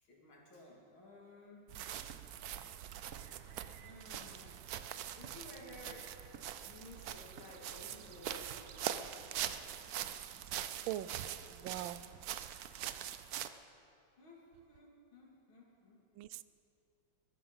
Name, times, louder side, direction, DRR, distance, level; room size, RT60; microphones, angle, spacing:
voice 1, 0.0-1.8 3.6-4.5 5.2-6.1 6.6-8.8 9.8-9.9 13.5-13.6 14.2-16.0, left 1 dB, 90° left, -2 dB, 3.6 m, -55 dB
sound 1, 1.5-9.6, right 6 dB, 50° right, 1.2 m, -58 dB
sound 2, 1.7-13.5, right 10 dB, 65° right, 0.9 m, -43 dB
voice 2, 10.9-12.0 16.2-16.4, right 13 dB, 90° right, 16 dB, 1.4 m, -42 dB
21.0 x 12.0 x 5.6 m, 2.6 s
omnidirectional pair, 2.1 m